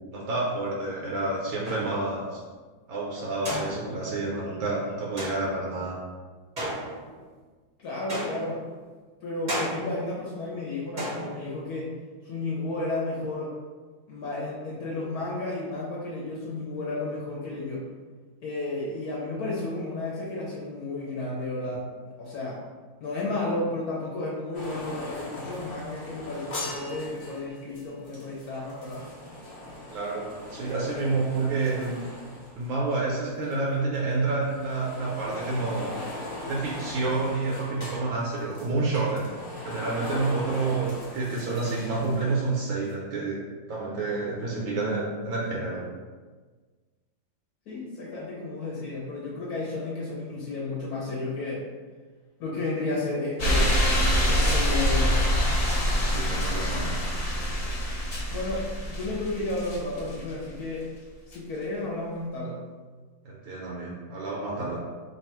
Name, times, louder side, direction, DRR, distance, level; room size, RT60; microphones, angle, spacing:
voice 1, 0.1-2.4 2.9-5.9 29.9-32.0 32.6-35.9 36.4-39.3 39.6-43.4 43.7-45.9 55.9-57.0 63.2-64.8, right 3 dB, 80° right, -4 dB, 1.4 m, -29 dB
sound 1, 1.6-2.2 3.5-4.2 5.2-5.7 6.6-7.3 8.1-8.7 9.5-10.1 11.0-11.6, right 1 dB, 40° right, 0.7 m, -34 dB
voice 2, 7.8-8.6 9.2-11.9 12.2-13.5 14.1-17.9 18.4-21.9 22.2-22.6 23.0-29.0 47.7-51.7 52.4-53.8 54.3-55.4 58.3-60.8 61.3-62.6, left 2 dB, 60° left, -5 dB, 1.1 m, -32 dB
sound 2, 24.5-33.2 33.4-42.6 42.9-43.0, left 1 dB, 90° left, 0.5 m, -40 dB
sound 3, 53.4-60.3 61.3-61.4, equal, 40° left, 0.5 m, -25 dB
3.4 x 2.3 x 4.2 m, 1.4 s
omnidirectional pair, 2.1 m